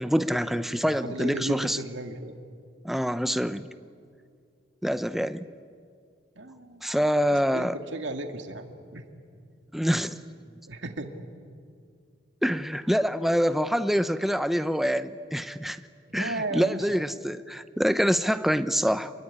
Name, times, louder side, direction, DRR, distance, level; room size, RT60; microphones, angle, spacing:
voice 1, 0.0-1.8 2.8-3.7 4.8-5.5 6.8-7.8 9.7-10.2 12.4-15.8 16.1-19.1, equal, ahead, 11 dB, 0.6 m, -26 dB
voice 2, 0.8-2.4 2.9-3.0 6.4-6.8 7.3-9.0 10.7-11.1 16.1-17.0, right 1 dB, 80° right, 5 dB, 2.2 m, -35 dB
27.5 x 22.0 x 9.9 m, 2.2 s
head